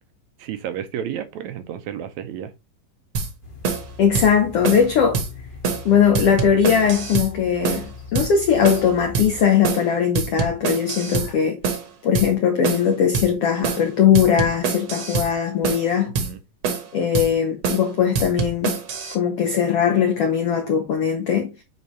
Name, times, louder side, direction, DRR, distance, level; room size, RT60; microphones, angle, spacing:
voice 1, 0.4-2.5 16.1-16.4, right 9 dB, 80° right, 1.7 m, -31 dB
sound 1, 3.1-3.3 3.6-3.9 4.1-4.3 4.6-4.9 5.1-5.3 5.6-5.9 6.1-7.3 7.6-7.9 8.1-8.3 8.6-8.9 9.1-9.3 9.6-9.9 10.1-11.3 11.6-11.9 12.1-12.3 12.6-12.9 13.1-13.3 13.6-13.9 14.1-15.3 15.6-15.9 16.1-16.3 16.6-16.9 17.1-17.3 17.6-17.9 18.1-19.1, right 5 dB, 55° right, 1.5 m, -25 dB
sound 2, 3.4-9.4, left 5 dB, 55° left, 0.5 m, -40 dB
voice 2, 4.0-5.2 5.8-11.6 12.0-16.1 16.9-18.8 19.1-21.5, left 7 dB, 75° left, 1.4 m, -19 dB
8.5 x 3.7 x 3.0 m
omnidirectional pair, 3.8 m